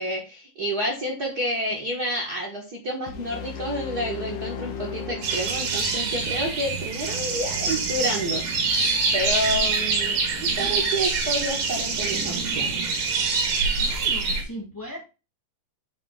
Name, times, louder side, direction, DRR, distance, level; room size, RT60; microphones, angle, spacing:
voice 1, 0.0-8.7 9.1-13.1, equal, 40° right, -1 dB, 1.4 m, -29 dB
sound 1, 3.1-6.1, left 8 dB, 80° left, 2.6 m, -36 dB
sound 2, 5.2-14.4, right 4 dB, 65° right, 3.0 m, -25 dB
voice 2, 13.8-15.0, equal, 10° left, 0 dB, 1.2 m, -38 dB
7.7 x 3.5 x 4.8 m, 0.30 s
omnidirectional pair, 4.0 m